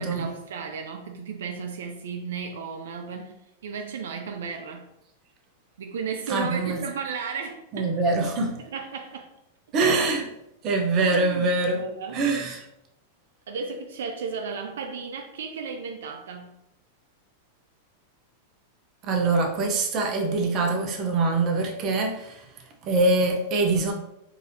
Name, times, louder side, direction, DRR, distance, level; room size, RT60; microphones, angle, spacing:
voice 1, 0.0-3.4 3.6-4.9 5.8-8.0 8.6-9.3 11.0-12.2 13.5-16.5, right 5 dB, 85° right, 0.4 m, -34 dB
voice 2, 6.3-6.8 7.7-8.6 9.7-10.3 10.6-11.8 12.1-12.6 19.0-22.5 22.8-23.9, right 3 dB, 35° right, 0.7 m, -24 dB
3.9 x 2.7 x 2.6 m
hypercardioid pair, 130°, 0 cm